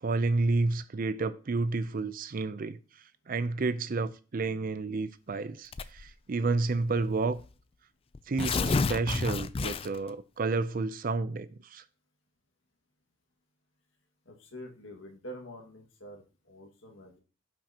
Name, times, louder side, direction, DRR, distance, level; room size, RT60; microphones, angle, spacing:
voice 1, 0.0-2.8 3.3-7.4 8.3-11.8, right 3 dB, 45° right, 0.5 m, -30 dB
Tearing, 5.7-6.1 7.0-7.1 7.4-7.5 8.1-10.1, left 4 dB, 30° left, 0.4 m, -30 dB
voice 2, 14.3-17.2, equal, 80° left, 1.8 m, -46 dB
17.0 x 5.9 x 2.8 m
head